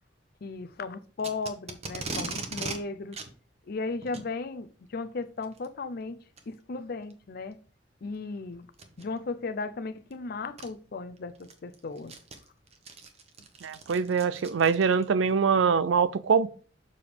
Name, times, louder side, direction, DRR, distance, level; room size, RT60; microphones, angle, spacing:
voice 1, 0.4-3.2 3.7-6.2 6.5-7.6 8.0-8.7 9.0-12.1, left 3 dB, 55° left, 0.5 m, -36 dB
Packing tape duct tape, 1.2-2.8 3.1-3.3 4.0-4.3 5.4-5.7 6.4-6.5 7.1-7.2 8.7-9.0 10.1-10.2 10.6-10.7 11.2-15.1, right 3 dB, 35° right, 0.9 m, -38 dB
voice 2, 13.6-16.5, right 6 dB, 90° right, 0.4 m, -24 dB
6.9 x 4.9 x 3.3 m
head